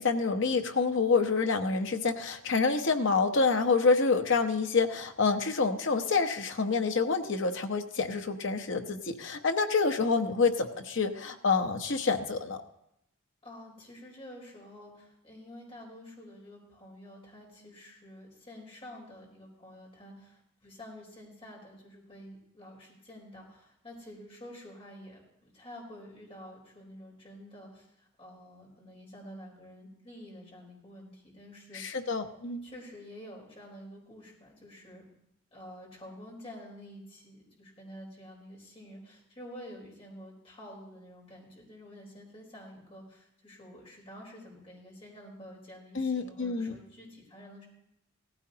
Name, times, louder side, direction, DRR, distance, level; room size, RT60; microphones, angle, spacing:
voice 1, 0.0-12.6 31.7-32.7 45.9-46.7, left 4 dB, 60° left, 6 dB, 0.9 m, -27 dB
voice 2, 13.4-32.1 32.6-35.0 35.5-47.7, equal, 30° left, -2 dB, 4.0 m, -49 dB
17.0 x 15.0 x 2.8 m, 0.78 s
head